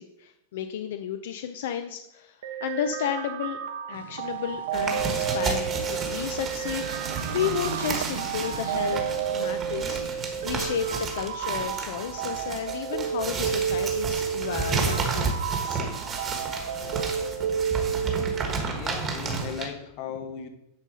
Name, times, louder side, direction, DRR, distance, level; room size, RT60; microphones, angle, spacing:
voice 1, 0.0-3.6 3.9-6.8 7.3-9.0 9.3-10.0 10.4-10.9 11.1-15.4 15.7-16.0, left 9 dB, 60° left, 8 dB, 0.6 m, -32 dB
sound 1, 2.4-18.4, right 7 dB, 65° right, 1.1 m, -31 dB
sound 2, 3.9-10.9, right 9 dB, 85° right, 0.6 m, -39 dB
sound 3, 4.7-19.7, right 4 dB, 15° right, 1.3 m, -32 dB
voice 2, 18.7-20.5, left 7 dB, 35° left, 7 dB, 1.1 m, -36 dB
10.5 x 4.1 x 6.3 m, 0.82 s
supercardioid pair, 175°, 0 cm